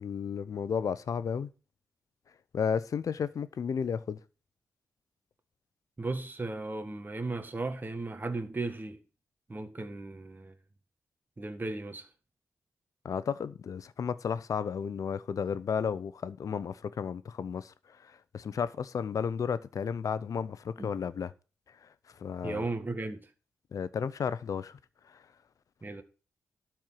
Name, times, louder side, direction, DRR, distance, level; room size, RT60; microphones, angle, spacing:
voice 1, 0.0-1.5 2.5-4.2 13.0-17.7 18.0-21.3 21.8-21.9 22.2-22.6 23.7-24.8, left 7 dB, 65° left, 0.7 m, -33 dB
voice 2, 6.0-9.0 9.5-10.6 11.4-12.1 20.8-20.9 22.4-23.3 25.8-26.0, right 3 dB, 30° right, 1.7 m, -36 dB
12.0 x 4.6 x 7.6 m
supercardioid pair, 45°, 6 cm